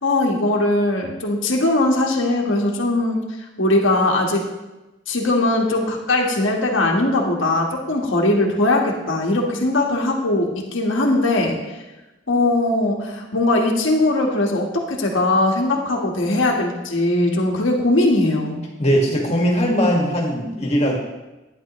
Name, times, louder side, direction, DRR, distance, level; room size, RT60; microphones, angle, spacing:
voice 1, 0.0-3.2 3.6-4.4 5.1-11.8 12.3-18.6, left 2 dB, 75° left, 0 dB, 1.3 m, -20 dB
voice 2, 18.8-21.0, equal, 35° left, -2 dB, 1.7 m, -19 dB
11.5 x 9.7 x 3.0 m, 1.1 s
head